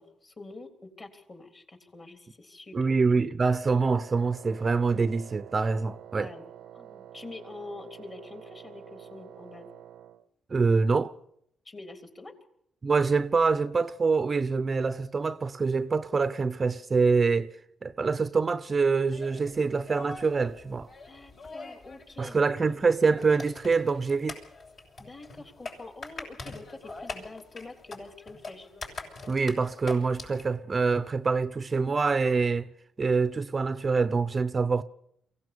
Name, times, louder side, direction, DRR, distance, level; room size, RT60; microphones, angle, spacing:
voice 1, 0.0-3.0 5.9-6.4 6.7-9.7 11.7-12.3 21.1-22.4 25.0-28.7, left 2 dB, 35° left, 3.6 m, -46 dB
voice 2, 2.7-6.3 10.5-11.1 12.8-17.5 17.8-20.9 22.2-24.4 29.3-32.7 33.0-34.8, right 4 dB, 35° right, 0.7 m, -25 dB
Wind instrument woodwind instrument, 3.6-10.3, right 10 dB, 75° right, 0.8 m, -48 dB
sound 1, 19.1-30.5, left 3 dB, 60° left, 6.7 m, -44 dB
23.5 x 16.5 x 6.9 m
cardioid pair, 85°, 0 cm